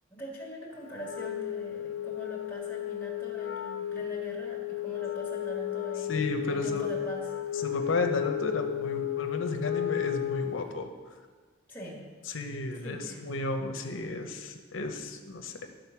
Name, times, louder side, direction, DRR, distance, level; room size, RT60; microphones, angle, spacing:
voice 1, 0.1-7.7 11.7-12.1 12.7-13.2 14.0-14.5, right 1 dB, 10° left, -5 dB, 1.7 m, -43 dB
Wind instrument woodwind instrument, 1.0-10.7, left 13 dB, 70° left, 0.4 m, -33 dB
voice 2, 6.1-6.9 7.6-10.9 12.3-15.7, left 2 dB, 85° left, 5 dB, 0.7 m, -33 dB
11.5 x 3.9 x 5.8 m, 1.5 s
head